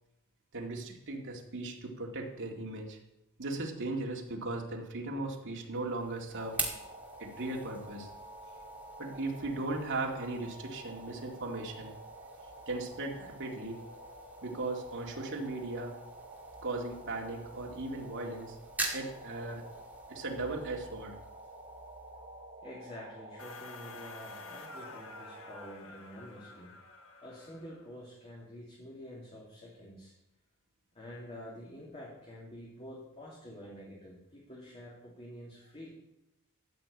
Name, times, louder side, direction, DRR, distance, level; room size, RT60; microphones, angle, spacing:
voice 1, 0.5-3.0 3.4-6.6 7.2-8.1 9.0-11.9 12.7-13.8 14.4-16.0 16.6-18.6 18.9-19.6 20.1-21.2, right 2 dB, 60° right, 0 dB, 2.2 m, -37 dB
sound 1, 5.7-22.7, right 2 dB, 10° right, 2.1 m, -45 dB
sound 2, 6.3-25.7, right 1 dB, 30° right, 5.7 m, -50 dB
voice 2, 22.6-26.7 27.2-30.1 30.9-35.9, equal, 30° left, -6 dB, 2.9 m, -48 dB
sound 3, 23.4-27.9, left 4 dB, 65° left, 1.4 m, -50 dB
13.5 x 5.7 x 8.5 m, 0.88 s
head